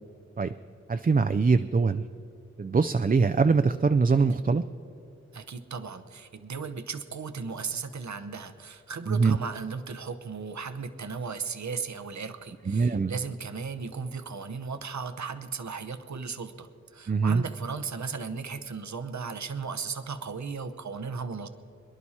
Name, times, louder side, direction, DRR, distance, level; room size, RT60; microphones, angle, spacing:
voice 1, 0.9-2.1 2.6-4.6 9.1-9.4 12.7-13.2 17.1-17.4, right 4 dB, 30° right, 9 dB, 0.4 m, -23 dB
voice 2, 5.3-21.5, right 5 dB, 70° right, 10 dB, 0.8 m, -36 dB
23.5 x 11.0 x 4.2 m, 2.9 s
wide cardioid pair, 60°, 29 cm